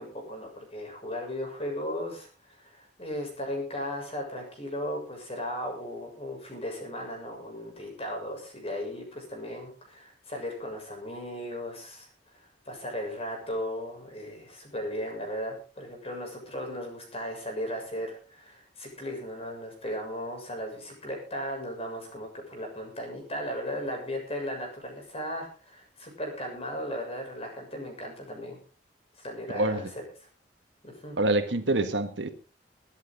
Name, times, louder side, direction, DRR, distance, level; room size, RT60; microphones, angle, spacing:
voice 1, 0.0-12.1 12.7-28.6 29.2-30.0 30.8-31.2, equal, 35° left, 7.0 m, -36 dB
voice 2, 29.5-29.9 31.2-32.3, right 2 dB, 75° right, 1.6 m, -26 dB
23.0 x 10.5 x 4.0 m
head